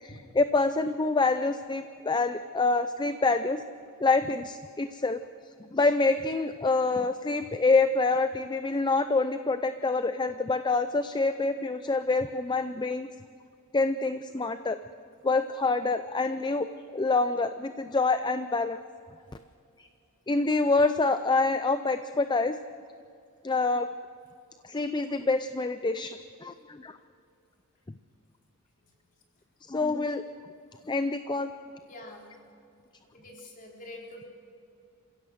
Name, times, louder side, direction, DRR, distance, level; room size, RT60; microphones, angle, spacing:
voice 1, 0.0-3.6 4.0-5.2 5.7-13.1 13.7-14.8 15.2-16.7 16.9-18.8 19.8-19.9 20.3-22.5 23.4-23.9 24.6-27.0 29.7-30.2 30.9-31.5, left 3 dB, 20° left, 10 dB, 0.5 m, -26 dB
voice 2, 31.9-32.3 33.1-34.3, left 1 dB, 40° left, -1 dB, 4.2 m, -45 dB
28.0 x 16.0 x 6.5 m, 2.5 s
head